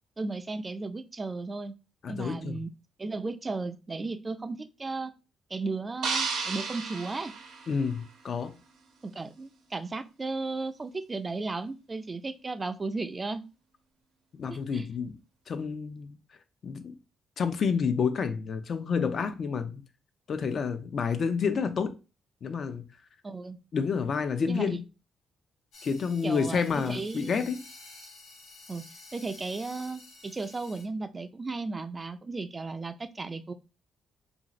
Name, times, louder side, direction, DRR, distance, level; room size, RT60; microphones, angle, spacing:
voice 1, 0.2-1.7 2.1-2.7 3.0-5.1 5.5-7.3 9.0-13.4 14.5-14.9 23.2-23.6 24.5-24.8 26.2-27.4 28.7-28.8 29.1-33.5, right 3 dB, 25° right, 0.3 m, -35 dB
voice 2, 2.0-2.5 7.7-8.5 14.4-15.1 15.5-16.2 16.6-16.9 17.4-19.8 20.3-22.0 22.4-22.8 23.7-24.9 25.8-27.6, left 6 dB, 50° left, 0.4 m, -29 dB
sound 1, 6.0-8.3, right 4 dB, 90° right, 0.8 m, -33 dB
sound 2, 25.7-30.8, left 3 dB, 90° left, 0.9 m, -50 dB
2.6 x 2.4 x 2.9 m
cardioid pair, 90°, 0 cm